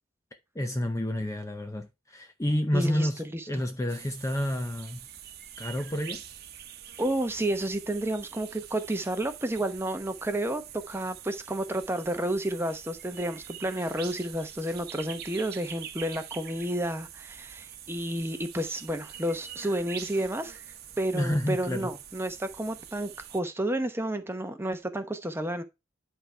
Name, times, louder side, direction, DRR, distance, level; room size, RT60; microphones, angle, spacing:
voice 1, 0.6-5.0 5.6-6.2 21.1-21.9, left 1 dB, 15° left, 0.6 m, -29 dB
voice 2, 2.7-3.4 7.0-20.6 21.0-25.6, right 1 dB, 10° right, 0.9 m, -31 dB
sound 1, 3.9-23.4, right 9 dB, 50° right, 1.0 m, -45 dB
11.0 x 3.7 x 4.4 m
head